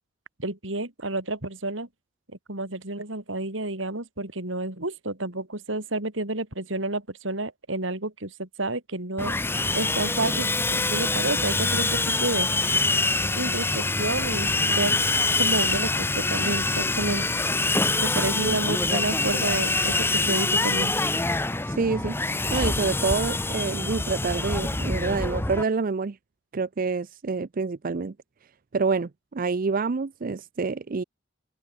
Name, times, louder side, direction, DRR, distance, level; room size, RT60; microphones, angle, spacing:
voice 1, 0.4-1.9 2.5-9.3 9.7-12.9 13.3-15.0 15.4-17.4 18.0-20.9, right 2 dB, 80° right, 3.9 m, -30 dB
Sawing, 9.2-25.6, left 3 dB, 10° left, 0.7 m, -25 dB
voice 2, 21.7-26.2 26.5-28.1 28.7-31.0, right 4 dB, 45° right, 0.5 m, -27 dB
open air
head